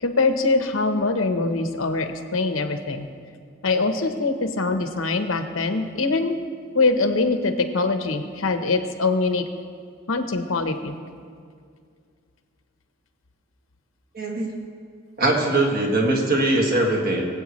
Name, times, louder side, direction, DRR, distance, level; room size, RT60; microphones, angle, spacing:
voice 1, 0.0-3.1 3.6-6.4 6.7-9.4 10.1-10.9, left 3 dB, 85° left, 7 dB, 1.0 m, -23 dB
voice 2, 14.1-14.5 15.2-17.2, right 2 dB, 50° right, -1 dB, 1.8 m, -21 dB
21.5 x 8.1 x 3.1 m, 2.2 s
head